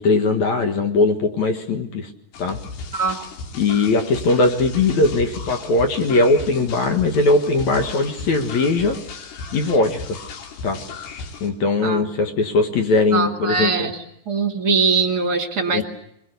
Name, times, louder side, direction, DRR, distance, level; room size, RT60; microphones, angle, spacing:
voice 1, 0.0-2.1 2.4-2.6 3.6-9.0 9.5-10.2 10.6-10.8 11.4-13.9 15.7-15.8, left 3 dB, 55° left, 6 dB, 2.5 m, -20 dB
sound 1, 2.3-11.5, left 4 dB, 75° left, 4.7 m, -36 dB
voice 2, 13.1-14.0 14.3-15.8, right 4 dB, 30° right, 5 dB, 2.0 m, -21 dB
26.0 x 22.0 x 8.3 m, 0.76 s
omnidirectional pair, 4.8 m